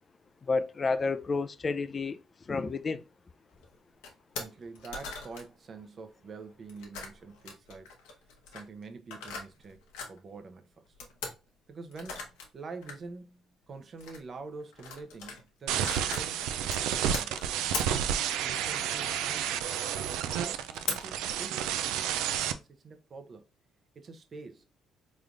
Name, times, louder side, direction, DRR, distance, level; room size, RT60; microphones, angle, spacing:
voice 1, 0.4-3.0, left 4 dB, 35° left, 0.4 m, -31 dB
sound 1, 3.5-3.7 4.0-4.1 4.3-4.5 4.7-5.5 6.7-10.2 11.0-11.3 11.9-12.4 12.8-12.9 14.0-14.2 14.6-15.4 15.7-19.4 20.0-20.1 20.5-21.0, left 5 dB, 90° left, 0.9 m, -39 dB
voice 2, 4.4-8.2 8.5-9.8 10.1-10.9 11.7-17.6 18.4-19.8 20.3-23.4 23.9-24.7, right 4 dB, 45° right, 0.7 m, -46 dB
sound 2, 15.7-22.5, right 9 dB, 85° right, 0.3 m, -31 dB
3.8 x 3.2 x 2.4 m
supercardioid pair, 65°, 0 cm